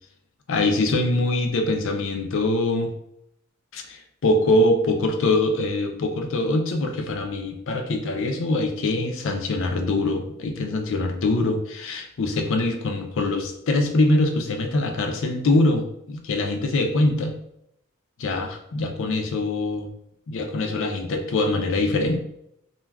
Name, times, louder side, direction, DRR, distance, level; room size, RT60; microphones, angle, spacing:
voice 1, 0.5-2.9 3.7-17.3 18.2-19.9 20.3-22.2, left 2 dB, 60° left, 4 dB, 0.4 m, -23 dB
2.3 x 2.2 x 3.2 m, 0.76 s
head